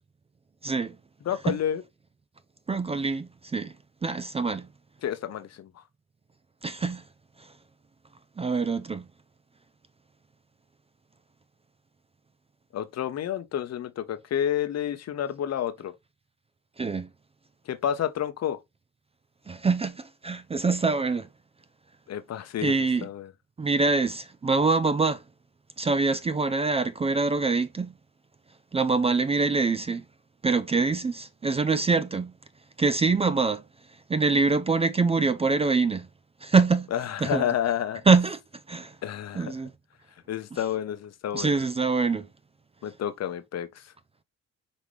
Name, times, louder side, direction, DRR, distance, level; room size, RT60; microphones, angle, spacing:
voice 1, 0.6-1.0 1.5-1.6 2.7-3.7 4.0-4.7 6.6-7.0 8.4-9.0 16.8-17.1 19.5-21.3 22.6-23.1 23.6-25.2 25.8-27.9 28.7-30.0 30.4-32.3 32.8-33.6 34.1-36.1 36.4-36.9 37.2-37.4 38.1-38.4 38.7-38.9 39.4-39.7 41.3-42.3, right 4 dB, 20° right, 0.4 m, -24 dB
voice 2, 1.2-1.8 5.0-5.7 12.7-15.9 17.7-18.6 22.1-23.3 36.9-38.0 39.0-39.5 40.3-41.6 42.8-43.9, left 10 dB, 60° left, 0.8 m, -30 dB
5.3 x 2.9 x 3.1 m
cardioid pair, 90°, 30 cm